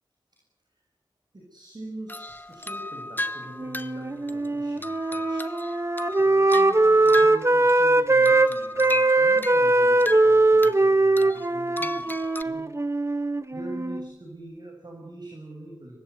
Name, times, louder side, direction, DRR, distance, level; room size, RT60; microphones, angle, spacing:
voice 1, 1.3-5.4 6.2-12.7 13.0-16.0, right 1 dB, 55° right, 1 dB, 7.1 m, -43 dB
sound 1, 2.1-7.9 8.2-10.8 11.2-12.4, left 1 dB, 20° left, 1.2 m, -35 dB
Wind instrument woodwind instrument, 3.6-8.5 8.8-14.1, right 2 dB, 35° right, 1.4 m, -21 dB
24.0 x 20.0 x 9.5 m, 0.90 s
cardioid pair, 40°, 9 cm